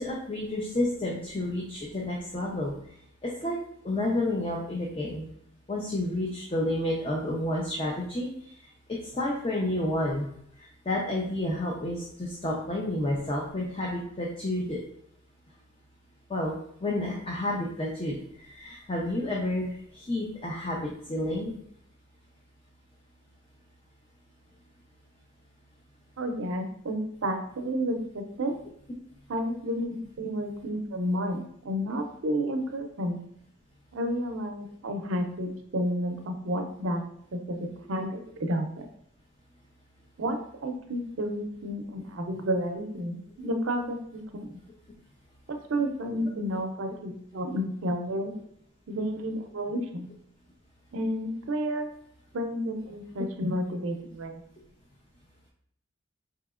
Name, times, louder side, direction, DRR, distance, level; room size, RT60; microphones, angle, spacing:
voice 1, 0.0-2.7 3.2-3.6 3.8-5.3 5.7-8.3 9.1-10.3 10.6-14.8 16.3-16.5 16.8-21.5, left 1 dB, 25° left, -3 dB, 0.5 m, -30 dB
voice 2, 26.2-28.5 29.3-33.2 33.9-37.0 37.3-38.9 40.2-44.5 45.5-48.3 48.9-50.1 50.9-51.9 52.3-54.4, equal, 80° right, 5 dB, 0.5 m, -31 dB
4.9 x 2.8 x 2.4 m, 0.69 s
head